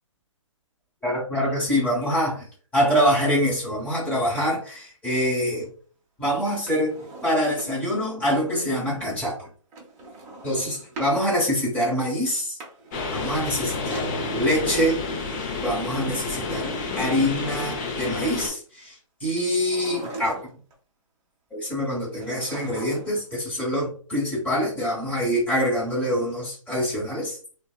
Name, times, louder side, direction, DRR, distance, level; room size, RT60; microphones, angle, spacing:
voice 1, 1.0-2.5 2.7-5.7 6.2-9.5 10.4-12.6 13.1-15.0 15.6-20.5 21.5-27.4, equal, 10° left, 1.1 m, -25 dB
Drawer open or close, 6.5-8.0 9.7-11.2 12.4-14.1 15.4-17.0 19.5-20.7 22.2-23.3 23.5-23.6, right 2 dB, 20° right, 0.7 m, -42 dB
sound 1, 12.9-18.5, left 3 dB, 35° left, 0.6 m, -30 dB
2.6 x 2.2 x 2.3 m
hypercardioid pair, 145°, 17 cm